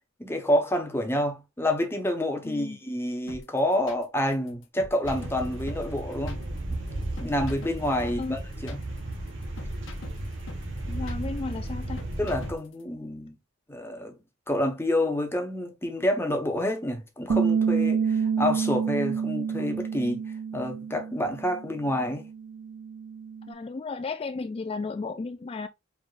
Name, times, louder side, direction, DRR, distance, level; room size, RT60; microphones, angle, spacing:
voice 1, 0.2-6.8 7.2-8.8 12.2-13.4 13.7-14.2 14.5-20.2 20.5-22.3, left 1 dB, 10° left, 1.1 m, -28 dB
voice 2, 2.4-2.8 8.0-8.3 10.9-12.0 23.5-25.7, left 3 dB, 30° left, 0.3 m, -34 dB
sound 1, 3.3-12.8, left 2 dB, 75° left, 1.0 m, -44 dB
sound 2, 5.0-12.5, right 1 dB, 70° right, 1.2 m, -34 dB
Bass guitar, 17.3-23.5, right 6 dB, 85° right, 0.6 m, -28 dB
4.8 x 3.6 x 2.4 m
head